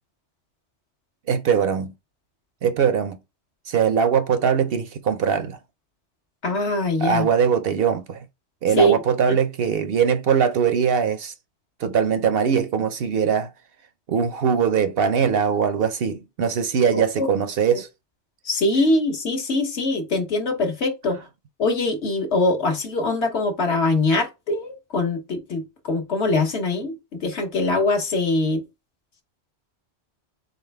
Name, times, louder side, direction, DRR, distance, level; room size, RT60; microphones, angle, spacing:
voice 1, 1.3-1.9 2.6-3.2 3.7-5.6 7.0-8.2 8.6-11.3 11.8-13.5 14.1-17.9, right 7 dB, 60° right, 0.7 m, -21 dB
voice 2, 6.4-7.3 8.8-9.0 16.9-17.3 17.7-17.8 18.4-21.2 21.6-28.6, left 2 dB, 70° left, 1.4 m, -23 dB
4.0 x 3.8 x 3.3 m
omnidirectional pair, 1.2 m